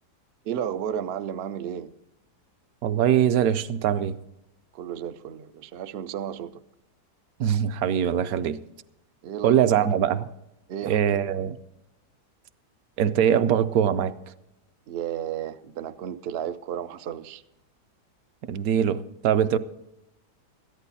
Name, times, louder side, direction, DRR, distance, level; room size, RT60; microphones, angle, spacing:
voice 1, 0.4-1.9 4.7-6.6 9.2-10.0 10.7-11.0 14.9-17.4, right 9 dB, 90° right, 0.5 m, -33 dB
voice 2, 2.8-4.2 7.4-8.6 9.4-10.2 10.9-11.6 13.0-14.1 18.5-19.6, right 9 dB, 70° right, 0.9 m, -22 dB
14.0 x 10.5 x 4.1 m
omnidirectional pair, 1.8 m